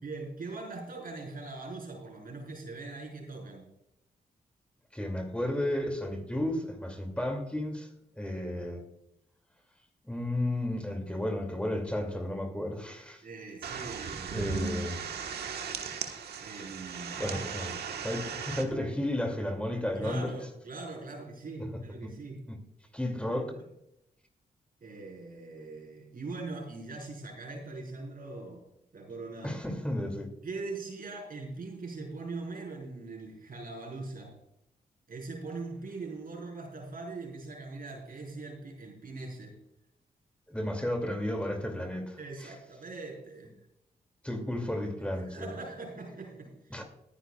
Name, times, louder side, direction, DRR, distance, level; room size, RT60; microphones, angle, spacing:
voice 1, 0.0-3.7 13.2-14.6 16.4-17.4 20.0-22.4 23.3-23.4 24.8-28.6 28.9-29.6 30.4-34.3 35.1-39.5 42.2-43.5 45.3-46.8, right 3 dB, 60° right, 4.7 m, -41 dB
voice 2, 4.9-7.9 8.2-8.8 10.0-13.2 14.3-15.0 17.2-17.7 18.0-20.4 22.5-22.6 22.9-23.5 29.4-30.3 40.5-42.5 44.2-45.5 46.7-46.8, left 1 dB, 5° left, 2.5 m, -33 dB
sound 1, 13.6-18.6, right 6 dB, 80° right, 1.3 m, -37 dB
21.0 x 10.0 x 2.4 m
supercardioid pair, 50°, 17 cm